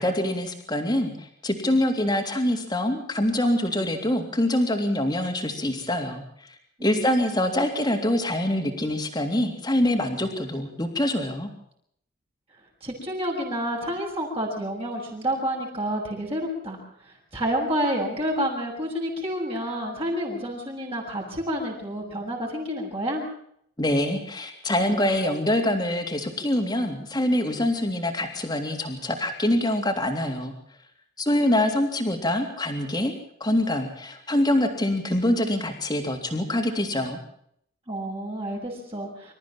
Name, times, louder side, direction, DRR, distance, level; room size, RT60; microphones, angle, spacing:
voice 1, 0.0-6.5 6.8-11.5 23.8-30.5 31.2-33.1 33.4-37.2, left 1 dB, 20° left, 4 dB, 3.3 m, -25 dB
voice 2, 6.8-7.4 12.8-23.2 37.9-39.3, equal, 25° right, -3 dB, 6.3 m, -29 dB
26.5 x 14.5 x 7.4 m, 0.69 s
head